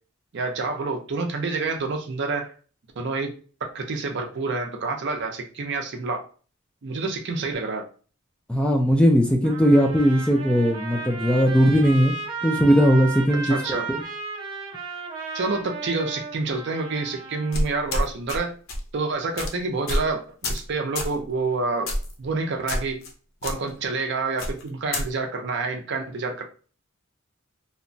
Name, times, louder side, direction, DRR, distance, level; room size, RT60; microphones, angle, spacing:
voice 1, 0.3-2.5 3.0-6.2 6.8-7.8 13.5-13.9 15.3-18.6 18.9-21.9 22.2-23.0 23.4-26.5, right 3 dB, 60° right, 4 dB, 0.5 m, -28 dB
voice 2, 8.5-12.1 12.4-13.6 13.9-14.0, equal, 5° left, 2 dB, 0.3 m, -19 dB
Trumpet, 9.4-17.6, right 4 dB, 25° right, 0.8 m, -34 dB
sound 1, 17.5-18.4 18.7-18.9 19.4-19.5 19.9-20.1 20.4-20.7 21.0-21.2 21.9-22.1 22.7-23.1 23.4-23.5 24.4-25.1, left 1 dB, 90° left, 0.6 m, -27 dB
2.8 x 2.1 x 2.6 m, 0.38 s
head